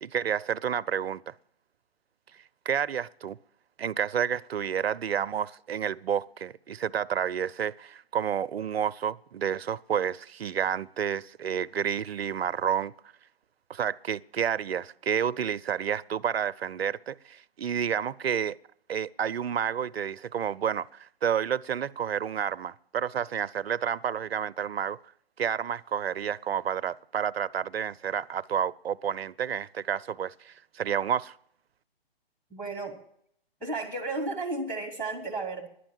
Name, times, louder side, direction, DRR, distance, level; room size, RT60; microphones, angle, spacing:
voice 1, 0.0-1.3 2.7-3.4 3.8-12.9 13.7-18.6 18.9-25.0 25.4-31.4, right 8 dB, 75° right, 0.6 m, -30 dB
voice 2, 32.5-33.0 33.6-35.7, right 2 dB, 5° left, 1.2 m, -33 dB
11.5 x 10.0 x 7.3 m
figure-of-eight pair, 140°, 31 cm